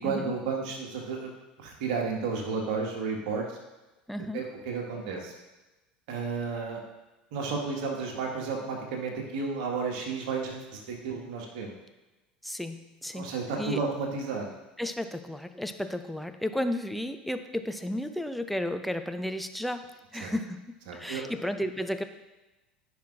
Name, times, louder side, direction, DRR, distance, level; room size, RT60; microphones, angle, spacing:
voice 1, 0.0-1.3 1.6-3.6 4.3-5.3 6.1-6.8 7.3-11.7 13.1-14.5 20.2-20.3 20.9-21.3, right 4 dB, 55° right, 1 dB, 1.7 m, -32 dB
voice 2, 4.1-4.4 12.4-13.3 13.6-13.8 14.8-22.0, left 1 dB, ahead, 8 dB, 0.6 m, -33 dB
14.5 x 5.6 x 2.5 m, 1.1 s
figure-of-eight pair, 75°, 5 cm